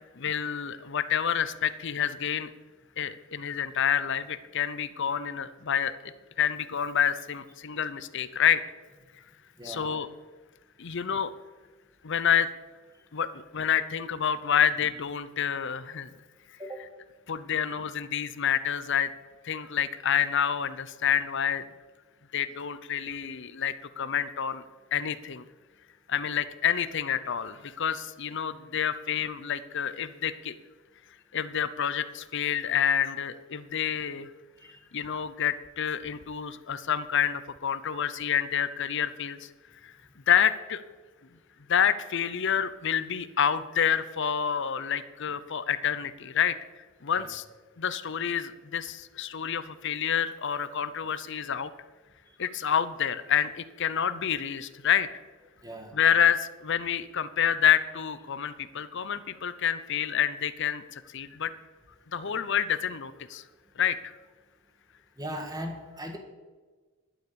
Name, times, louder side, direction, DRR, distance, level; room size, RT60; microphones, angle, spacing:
voice 1, 0.2-2.5 3.0-6.1 6.4-8.6 9.6-10.1 10.8-11.3 12.0-12.5 13.1-13.3 13.5-16.1 17.3-19.1 19.4-21.7 22.3-24.6 24.9-25.5 26.1-30.6 31.3-34.3 34.9-39.5 39.8-39.9 40.3-40.8 41.7-47.4 47.8-51.7 52.4-55.1 55.9-61.5 62.1-63.4 63.8-64.1, left 8 dB, 60° left, 14 dB, 0.7 m, -28 dB
voice 2, 9.6-9.9 16.6-16.8 34.6-34.7 47.2-47.3 55.6-56.0 65.2-66.2, equal, 20° right, 4 dB, 1.7 m, -38 dB
11.5 x 8.0 x 6.9 m, 1.4 s
head